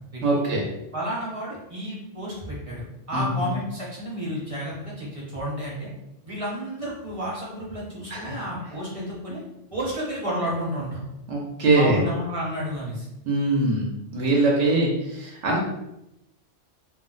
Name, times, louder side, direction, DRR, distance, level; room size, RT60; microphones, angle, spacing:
voice 1, 0.2-0.6 3.1-3.5 8.1-8.3 11.3-12.0 13.2-15.6, right 2 dB, 80° right, -2 dB, 1.0 m, -23 dB
voice 2, 0.9-5.9 6.2-9.4 9.7-11.0 11.7-13.1 14.4-14.9, equal, 35° right, -5 dB, 0.7 m, -31 dB
2.4 x 2.0 x 3.8 m, 0.87 s
omnidirectional pair, 1.2 m